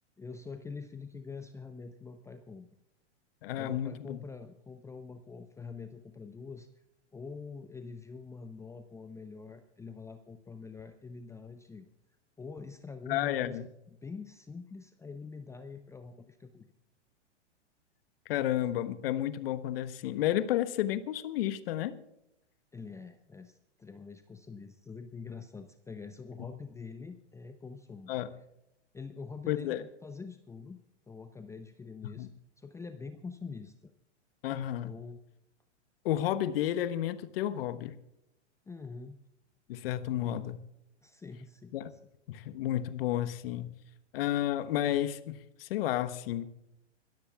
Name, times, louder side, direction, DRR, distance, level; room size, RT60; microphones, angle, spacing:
voice 1, 0.2-2.7 3.5-6.7 7.1-11.9 12.4-13.7 14.0-16.7 22.7-28.1 28.9-30.8 31.1-32.3 32.6-33.9 34.8-35.2 38.7-39.2 40.2-40.5 41.0-42.0, left 4 dB, 10° left, 8 dB, 0.6 m, -45 dB
voice 2, 3.4-4.2 13.1-13.7 18.3-21.9 28.1-28.3 29.5-29.8 32.2-32.3 34.4-34.9 36.0-38.0 39.7-40.6 41.7-41.9 42.3-43.7 44.1-46.5, left 12 dB, 55° left, 13 dB, 1.2 m, -31 dB
26.5 x 13.5 x 2.4 m, 0.86 s
hypercardioid pair, 110°, 35 cm